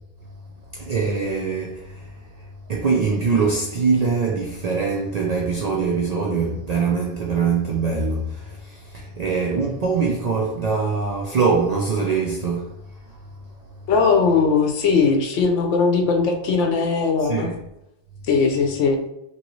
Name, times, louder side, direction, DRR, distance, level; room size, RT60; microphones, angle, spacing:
voice 1, 0.7-2.1 2.7-12.7 17.3-17.5, right 5 dB, 80° right, 0.3 m, -23 dB
voice 2, 13.9-17.5 18.3-19.0, left 5 dB, 85° left, 0.9 m, -19 dB
2.9 x 2.6 x 3.0 m
omnidirectional pair, 1.2 m